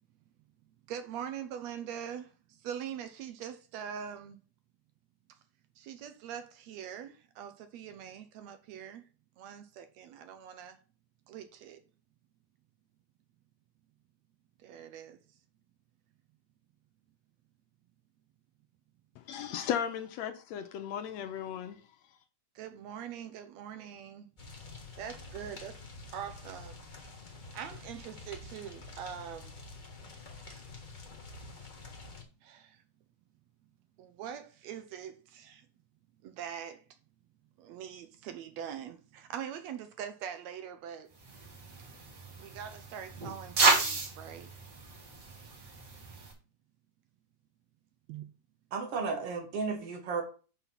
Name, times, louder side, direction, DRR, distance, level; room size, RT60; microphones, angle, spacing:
voice 1, 0.9-4.4 5.8-9.0 9.4-10.8 11.3-11.8 14.6-15.2 22.6-24.3 25.0-25.8 26.1-26.8 27.5-29.6 30.5-30.6 32.4-32.8 34.0-35.7 36.2-36.8 37.6-41.1 42.4-44.5 48.1-48.3, right 9 dB, 75° right, 1.8 m, -43 dB
voice 2, 19.2-21.8, left 9 dB, 75° left, 1.8 m, -36 dB
sound 1, 24.4-32.2, left 3 dB, 55° left, 0.5 m, -48 dB
sound 2, 41.2-46.3, right 3 dB, 40° right, 2.1 m, -32 dB
voice 3, 48.7-50.2, right 4 dB, 60° right, 1.8 m, -33 dB
5.8 x 5.8 x 5.8 m
omnidirectional pair, 3.4 m